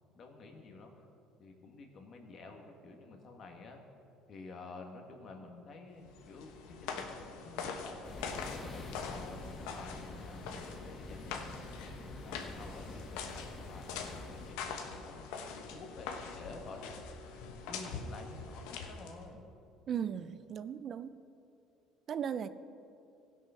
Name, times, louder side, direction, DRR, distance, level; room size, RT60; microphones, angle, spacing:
voice 1, 0.1-0.9 1.4-3.8 4.3-11.6 12.2-17.0 17.7-19.5, left 3 dB, 45° left, 3 dB, 1.7 m, -50 dB
footsteps walking toward and away, 6.0-19.3, left 5 dB, 85° left, 1.1 m, -44 dB
sound 1, 8.0-14.6, left 2 dB, 25° left, 1.3 m, -47 dB
voice 2, 19.9-21.2 22.1-22.5, right 8 dB, 45° right, 13 dB, 0.4 m, -37 dB
16.0 x 6.3 x 5.7 m, 2.7 s
supercardioid pair, 105°, 0 cm